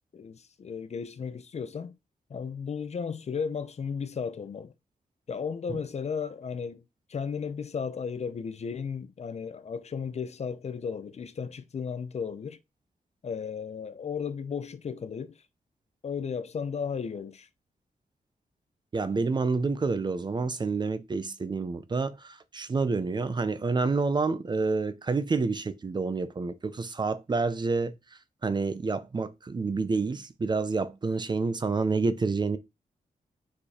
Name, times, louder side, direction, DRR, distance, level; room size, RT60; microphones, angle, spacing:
voice 1, 0.1-1.9 2.3-4.7 5.3-6.8 7.1-12.6 13.2-15.3 16.0-17.5, left 6 dB, 45° left, 0.6 m, -34 dB
voice 2, 18.9-27.9 28.4-32.6, right 4 dB, 30° right, 0.5 m, -28 dB
4.9 x 4.6 x 4.3 m
wide cardioid pair, 160°, 15 cm